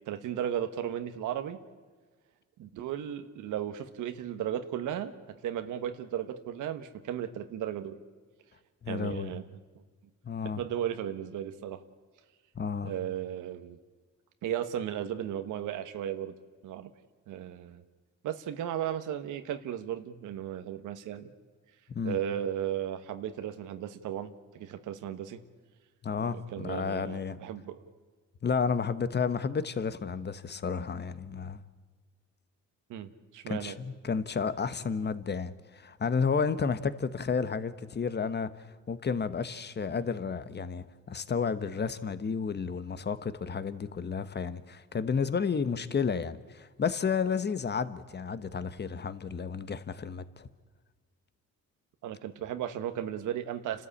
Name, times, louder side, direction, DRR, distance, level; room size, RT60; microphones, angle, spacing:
voice 1, 0.1-1.6 2.6-8.0 8.9-9.4 10.5-11.8 12.8-13.8 14.4-16.3 16.6-16.9 17.3-17.8 18.2-21.3 22.0-25.4 26.2-27.8 32.9-33.7 52.0-53.9, right 10 dB, 85° right, 1.4 m, -35 dB
voice 2, 8.8-9.3 10.2-10.6 12.5-12.9 21.9-22.2 26.0-27.4 28.4-31.6 33.5-50.5, left 5 dB, 35° left, 1.2 m, -32 dB
29.5 x 13.0 x 8.6 m
cardioid pair, 90°, 30 cm